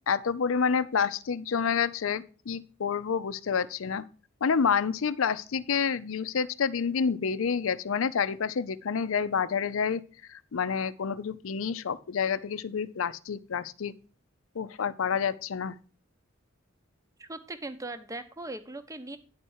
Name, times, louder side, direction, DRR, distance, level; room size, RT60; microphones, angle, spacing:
voice 1, 0.1-4.0 4.4-10.0 10.3-13.9 14.6-15.8, left 6 dB, 75° left, 16 dB, 0.5 m, -28 dB
voice 2, 17.2-19.2, right 2 dB, 15° right, 10 dB, 0.7 m, -39 dB
10.0 x 4.4 x 6.3 m, 0.38 s
head